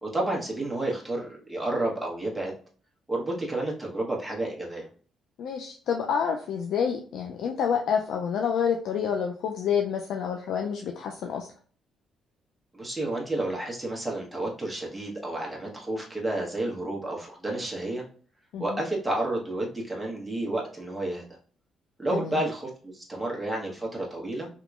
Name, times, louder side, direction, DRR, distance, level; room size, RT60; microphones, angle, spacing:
voice 1, 0.0-2.5 3.1-4.8 12.7-18.0 18.6-21.2 22.0-24.5, right 1 dB, 5° right, -3 dB, 1.1 m, -31 dB
voice 2, 5.4-11.5 18.5-18.8 22.1-22.4, left 7 dB, 75° left, 2 dB, 0.4 m, -28 dB
3.7 x 2.8 x 2.4 m, 0.42 s
cardioid pair, 90°, 0 cm